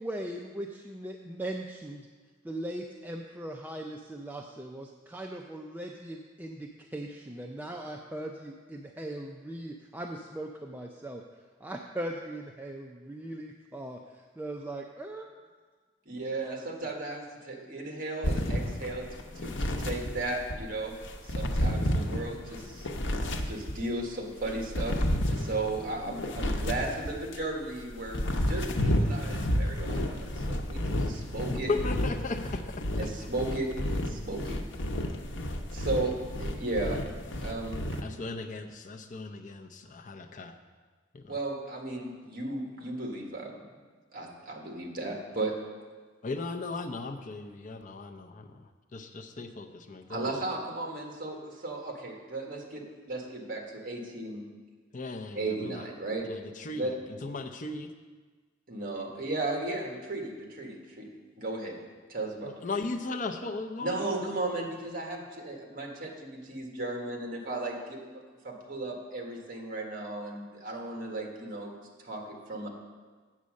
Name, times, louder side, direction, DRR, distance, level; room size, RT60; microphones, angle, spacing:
voice 1, 0.0-2.1 2.4-11.2 11.6-14.0 14.4-15.3, right 1 dB, 10° right, 1 dB, 0.4 m, -39 dB
voice 2, 16.0-19.1 19.3-21.0 21.3-25.0 25.3-31.7 33.0-34.6 35.7-37.0 37.4-37.8 41.3-43.6 44.1-45.5 50.1-54.4 55.3-56.3 56.7-56.9 58.7-61.1 61.4-61.7 62.1-62.5 63.8-68.0 68.4-71.7 72.0-72.7, right 2 dB, 50° right, 1 dB, 1.7 m, -35 dB
sound 1, 18.2-20.6 21.0-24.0 24.4-27.4 27.9-38.0, equal, 80° left, 0.8 m, -31 dB
voice 3, 31.5-32.8 38.0-40.5 41.1-41.4 46.2-50.3 54.9-55.8 56.2-57.9 62.4-64.1, left 3 dB, 45° left, 5 dB, 0.6 m, -37 dB
8.3 x 7.3 x 6.4 m, 1.4 s
head